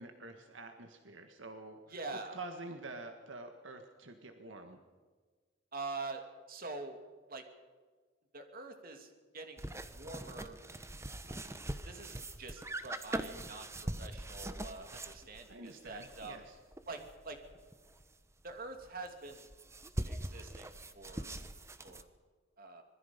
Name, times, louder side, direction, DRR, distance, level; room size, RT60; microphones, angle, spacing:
voice 1, 0.0-4.8 15.5-16.6, right 2 dB, 80° right, 5 dB, 1.7 m, -48 dB
voice 2, 1.9-2.4 5.7-7.0 7.3-7.4 8.3-10.6 11.8-13.7 14.0-16.4 16.9-17.4 18.4-19.5 20.0-21.4 21.8-22.1 22.6-22.8, right 3 dB, 50° right, 5 dB, 2.7 m, -45 dB
sound 1, 9.6-18.1 18.5-18.6 18.8-22.0, right 1 dB, 15° right, 1.0 m, -42 dB
25.5 x 21.0 x 5.3 m, 1.5 s
head